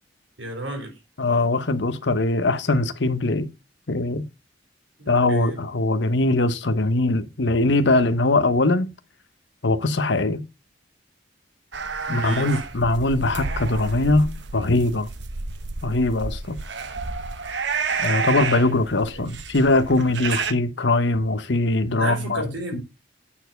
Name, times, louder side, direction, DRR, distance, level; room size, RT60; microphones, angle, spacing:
voice 1, 0.4-0.9 5.0-5.6 12.1-12.6 19.1-19.2 21.9-22.8, right 2 dB, 90° right, 3.6 m, -33 dB
voice 2, 1.2-3.5 3.9-4.2 5.1-8.9 9.6-10.4 12.1-15.1 15.8-16.6 18.0-22.5 22.7-22.8, left 2 dB, 70° left, 1.0 m, -21 dB
sound 1, 11.7-20.5, right 4 dB, 70° right, 1.0 m, -30 dB
8.8 x 4.6 x 5.7 m
head